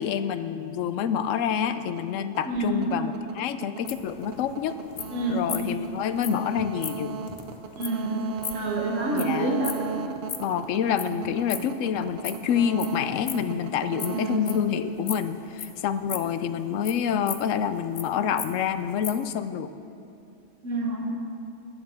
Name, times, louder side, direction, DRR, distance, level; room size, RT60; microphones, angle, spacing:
voice 1, 0.0-4.8 5.3-7.2 9.1-9.6 10.4-19.7, left 8 dB, 80° left, 11 dB, 0.9 m, -27 dB
sound 1, 1.7-15.6, right 6 dB, 60° right, 0.8 m, -37 dB
voice 2, 2.5-2.8 5.1-5.4 7.8-8.2 8.5-9.7 11.0-11.2 14.1-14.4 20.6-21.0, right 2 dB, 80° right, -2 dB, 1.7 m, -28 dB
sound 2, 3.9-10.6 10.9-12.9 13.2-14.7 15.1-16.4 16.8-18.0 18.4-18.5 18.7-19.1, left 7 dB, 50° left, 0.6 m, -37 dB
13.5 x 9.6 x 4.4 m, 2.7 s
omnidirectional pair, 1.3 m